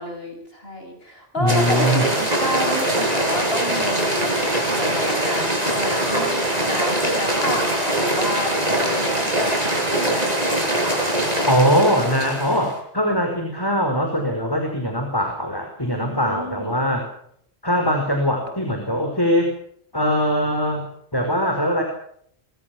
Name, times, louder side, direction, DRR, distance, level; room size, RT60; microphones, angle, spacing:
voice 1, 0.0-4.3 4.7-10.3 15.8-16.7, equal, 60° left, 4 dB, 7.1 m, -30 dB
voice 2, 1.4-2.1 11.5-17.0 17.6-19.5 19.9-20.9 21.1-21.8, equal, 20° left, 4 dB, 5.0 m, -21 dB
sound 1, 1.5-12.8, right 1 dB, 35° right, 7.1 m, -22 dB
25.0 x 23.5 x 6.2 m, 0.66 s
omnidirectional pair, 1.1 m